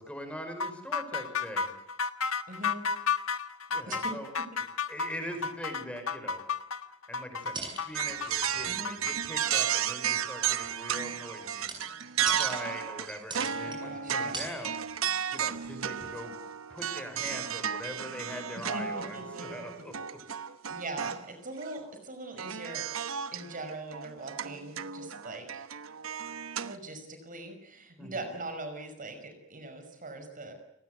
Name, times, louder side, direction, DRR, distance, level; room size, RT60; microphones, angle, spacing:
voice 1, 0.0-1.7 3.7-4.3 4.9-6.5 7.1-11.7 12.3-14.8 15.3-16.3 16.7-20.2 28.0-28.3, equal, 5° left, 6 dB, 5.5 m, -42 dB
sound 1, 0.6-9.2, left 5 dB, 90° left, 1.4 m, -32 dB
voice 2, 2.5-2.9 3.9-4.1 4.5-4.6 8.7-9.0 13.6-14.5 18.7-19.7 20.7-22.9 23.3-25.7 26.6-30.5, right 2 dB, 40° right, 6 dB, 5.5 m, -41 dB
sound 2, 7.4-8.7 9.0-9.8 10.2-12.6 13.2-13.8 14.1-14.6 14.9-15.1 15.4-16.2 17.0-17.1 17.2-17.3, right 3 dB, 20° right, 7.5 m, -41 dB
sound 3, 7.9-21.2 21.6-21.7 22.4-26.8, right 8 dB, 80° right, 1.1 m, -33 dB
29.5 x 20.0 x 8.1 m, 0.83 s
head